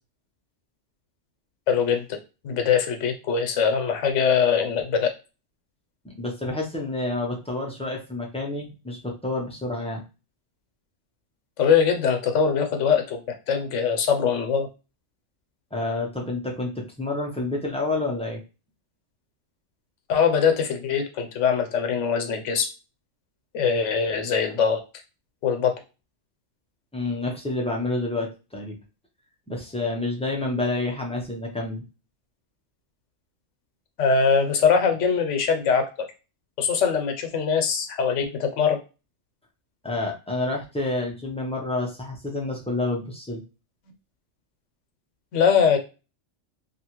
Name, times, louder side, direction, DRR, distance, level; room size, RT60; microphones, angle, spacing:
voice 1, 1.7-2.2 2.4-5.1 11.6-13.2 13.5-14.7 20.1-22.7 23.5-24.8 25.4-25.8 34.0-35.8 36.6-38.8 45.3-45.8, left 6 dB, 85° left, 6 dB, 1.0 m, -22 dB
voice 2, 6.0-10.0 15.7-18.4 26.9-28.8 29.5-31.8 39.8-43.4, left 2 dB, 10° left, -1 dB, 0.3 m, -29 dB
2.7 x 2.4 x 2.9 m, 0.30 s
omnidirectional pair, 1.2 m